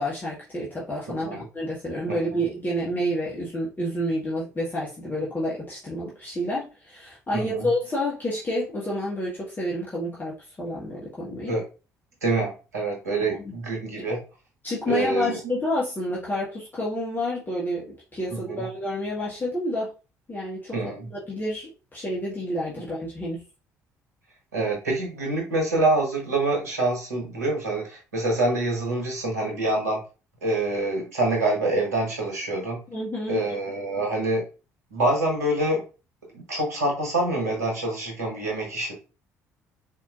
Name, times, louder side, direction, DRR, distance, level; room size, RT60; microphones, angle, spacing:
voice 1, 0.0-11.5 13.4-13.5 14.0-14.1 14.6-19.9 20.3-20.8 21.1-23.4 32.9-33.4, left 1 dB, 20° left, -6 dB, 1.3 m, -29 dB
voice 2, 7.3-7.7 11.5-11.6 12.2-14.2 14.9-15.5 18.3-18.6 20.7-21.1 24.5-30.0 30.4-32.8 33.3-34.4 34.9-35.8 36.3-38.9, right 2 dB, 80° right, 0 dB, 1.1 m, -26 dB
4.2 x 2.8 x 2.4 m, 0.32 s
figure-of-eight pair, 50°, 8 cm